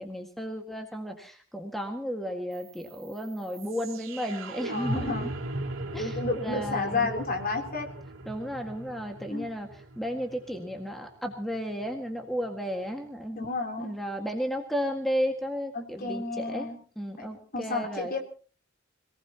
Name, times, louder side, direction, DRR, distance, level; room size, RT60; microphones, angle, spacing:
voice 1, 0.0-5.3 5.9-7.1 8.3-13.5 13.8-16.7 17.0-18.1, equal, ahead, 3 dB, 1.8 m, -33 dB
sound 1, 2.5-12.5, right 2 dB, 75° right, 3.0 m, -39 dB
voice 2, 4.7-5.3 5.9-7.9 9.3-9.5 13.3-13.9 15.7-16.8 17.2-17.3 17.5-18.2, left 3 dB, 45° left, 3 dB, 3.4 m, -31 dB
26.5 x 18.5 x 2.9 m, 0.39 s
head